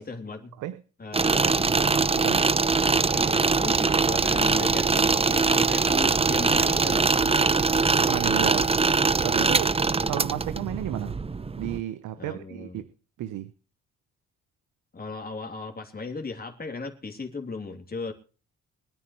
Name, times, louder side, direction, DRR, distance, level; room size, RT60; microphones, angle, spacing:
voice 1, 0.0-0.5 1.0-1.8 3.1-7.8 9.4-9.7 10.0-10.1 12.2-12.8 14.9-18.1, left 4 dB, 30° left, 3.2 m, -36 dB
sound 1, 1.1-11.8, right 4 dB, 20° right, 0.8 m, -22 dB
voice 2, 2.1-2.5 8.1-8.7 9.2-9.7 10.1-11.2 11.6-12.9 13.2-13.5, right 13 dB, 85° right, 1.0 m, -32 dB
24.5 x 9.6 x 3.1 m
cardioid pair, 90°, 30 cm